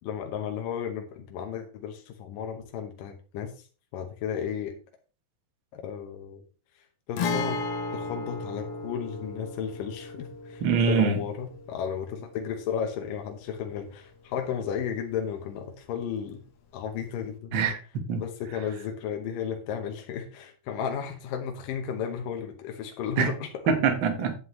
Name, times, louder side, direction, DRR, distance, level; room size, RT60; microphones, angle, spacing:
voice 1, 0.0-3.5 3.9-4.8 5.7-6.4 7.1-7.6 7.9-10.6 10.9-16.4 16.7-17.6 18.1-23.5, left 8 dB, 75° left, 2.6 m, -34 dB
Guitar, 7.2-14.8 15.1-15.2 17.2-17.3, left 3 dB, 60° left, 1.6 m, -35 dB
voice 2, 10.6-11.2 17.5-18.2 23.2-23.3 23.7-24.3, right 6 dB, 50° right, 1.5 m, -24 dB
9.8 x 7.7 x 3.1 m
omnidirectional pair, 3.9 m